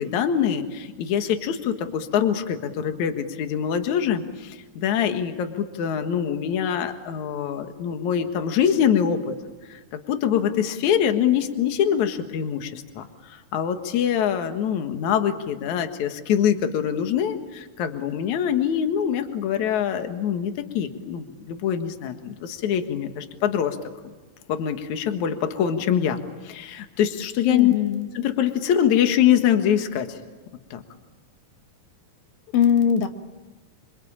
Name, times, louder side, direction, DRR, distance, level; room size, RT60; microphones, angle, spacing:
voice 1, 0.0-9.3 9.7-9.8 10.1-23.8 24.0-24.1 24.5-27.7 28.1-30.2 30.7-30.8, left 9 dB, 65° left, 7 dB, 2.8 m, -24 dB
voice 2, 27.5-28.1 32.5-33.1, left 8 dB, 85° left, 7 dB, 3.2 m, -20 dB
27.0 x 25.5 x 8.7 m, 1.3 s
omnidirectional pair, 4.0 m